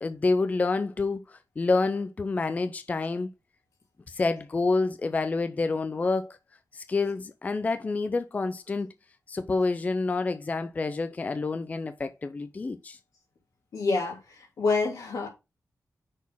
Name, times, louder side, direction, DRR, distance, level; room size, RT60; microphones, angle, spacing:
voice 1, 0.0-3.3 4.1-6.4 6.7-8.9 9.3-13.0, left 3 dB, 25° left, 0.4 m, -28 dB
voice 2, 13.7-15.3, left 3 dB, 85° left, 3.0 m, -27 dB
6.2 x 4.1 x 5.4 m
wide cardioid pair, 165°, 6 cm